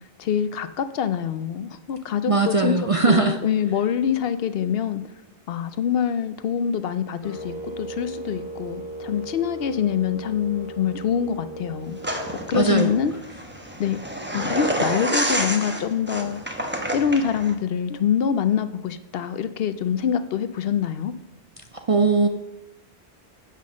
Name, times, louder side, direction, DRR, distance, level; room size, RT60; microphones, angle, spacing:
voice 1, 0.2-2.7 3.1-5.0 5.5-12.0 12.5-13.1 13.8-14.0 14.3-16.4 16.9-21.1, left 8 dB, 65° left, 0.7 m, -25 dB
voice 2, 2.3-3.4 12.2-12.9 21.9-22.3, right 4 dB, 45° right, 0.4 m, -20 dB
sound 1, 7.2-13.3, right 2 dB, 30° left, 1.3 m, -37 dB
sound 2, 12.0-17.5, right 1 dB, 10° right, 0.9 m, -28 dB
8.4 x 5.4 x 6.3 m
omnidirectional pair, 1.1 m